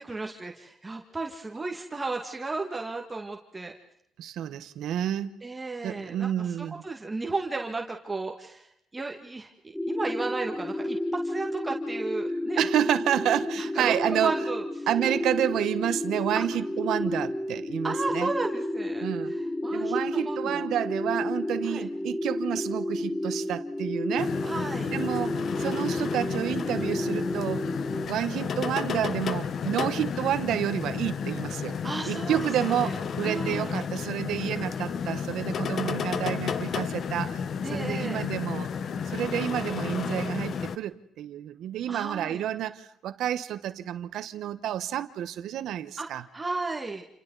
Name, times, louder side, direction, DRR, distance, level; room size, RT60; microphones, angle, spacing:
voice 1, 0.0-3.7 5.4-6.3 6.6-8.7 8.9-9.5 9.9-12.6 13.6-14.6 16.3-16.5 17.8-20.6 21.6-21.9 24.4-24.9 31.8-33.0 33.2-33.8 37.6-38.3 41.9-42.4 46.0-46.1 46.3-47.0, right 3 dB, 20° right, 2.0 m, -34 dB
voice 2, 4.2-5.4 5.8-6.8 12.6-14.4 14.9-18.3 19.0-19.3 19.7-24.4 24.8-27.7 28.0-31.8 32.1-37.4 37.7-38.7 39.1-46.2, right 11 dB, 80° right, 1.2 m, -29 dB
sound 1, 9.7-28.1, left 1 dB, 5° left, 1.3 m, -31 dB
sound 2, 24.2-40.8, left 6 dB, 60° left, 1.1 m, -32 dB
30.0 x 29.0 x 4.1 m
cardioid pair, 90°, 0 cm